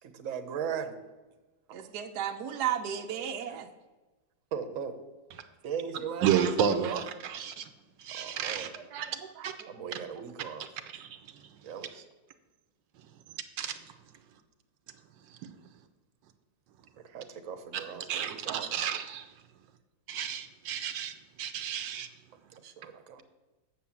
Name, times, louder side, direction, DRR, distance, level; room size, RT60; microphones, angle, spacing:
voice 1, 0.0-1.0 1.8-1.9 3.1-3.6 4.5-5.0 5.6-7.0 8.1-8.8 9.7-10.7 11.6-12.1 17.0-18.7 22.5-23.2, right 7 dB, 55° right, 1.2 m, -38 dB
voice 2, 1.7-3.7 8.9-9.7, right 9 dB, 70° right, 1.1 m, -35 dB
voice 3, 6.2-7.0 7.3-7.6 8.0-8.7 9.0-9.2 9.4-9.5 11.0-11.1 13.6-13.8 15.4-15.5 17.7-17.8 18.1-19.3 20.1-22.1, right 8 dB, 85° right, 1.4 m, -31 dB
8.8 x 6.8 x 7.2 m
omnidirectional pair, 2.0 m